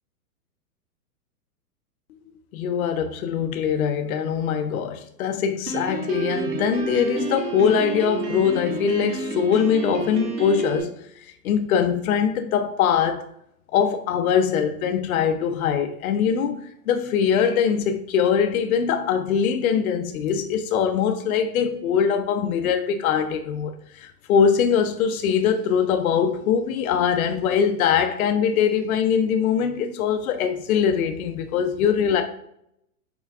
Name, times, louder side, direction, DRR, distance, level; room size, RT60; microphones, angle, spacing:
voice 1, 2.5-11.0 11.4-13.2 13.7-32.2, left 7 dB, 70° left, 0.6 m, -22 dB
Piano, 5.7-10.8, right 5 dB, 85° right, 1.4 m, -30 dB
5.9 x 3.7 x 2.4 m
hypercardioid pair, 165°, 45 cm